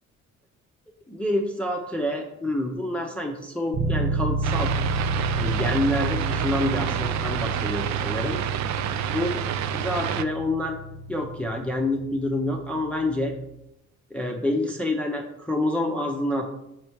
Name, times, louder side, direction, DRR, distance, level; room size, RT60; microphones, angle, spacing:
voice 1, 1.1-4.7 5.3-8.4 9.1-9.3 9.7-10.8 11.1-13.3 14.1-16.5, left 1 dB, 5° left, 1 dB, 0.7 m, -27 dB
sound 1, 3.7-13.5, right 2 dB, 85° right, 1.7 m, -30 dB
sound 2, 4.4-10.2, right 11 dB, 65° right, 0.4 m, -29 dB
6.4 x 3.3 x 4.6 m, 0.84 s
cardioid pair, 90°, 30 cm